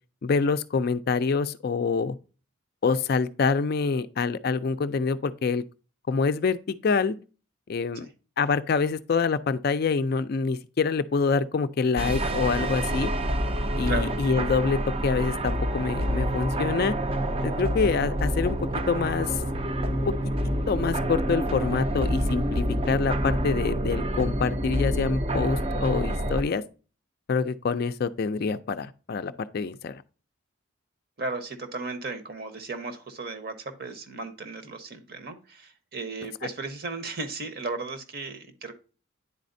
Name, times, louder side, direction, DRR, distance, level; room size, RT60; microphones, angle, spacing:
voice 1, 0.2-2.2 2.8-5.6 6.1-7.2 7.7-8.1 8.4-13.1 13.8-16.9 17.4-19.4 20.1-20.3 20.7-26.6 27.3-30.0, left 5 dB, 50° left, 0.3 m, -26 dB
sound 1, 12.0-26.4, equal, 25° right, 0.5 m, -27 dB
voice 2, 31.2-38.7, right 3 dB, 45° right, 0.9 m, -35 dB
9.9 x 4.2 x 2.6 m
head